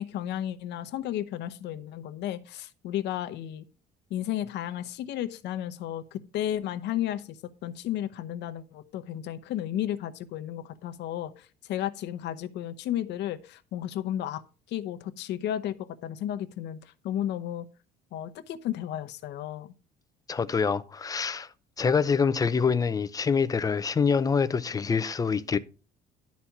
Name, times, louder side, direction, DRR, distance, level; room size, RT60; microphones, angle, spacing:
voice 1, 0.0-3.6 4.1-7.4 7.6-14.4 14.7-15.7 16.0-17.7 18.1-19.7, left 11 dB, 70° left, 0.8 m, -33 dB
voice 2, 20.3-21.5 21.8-25.6, left 5 dB, 20° left, 0.5 m, -25 dB
11.5 x 4.2 x 5.9 m
cardioid pair, 135°, 19 cm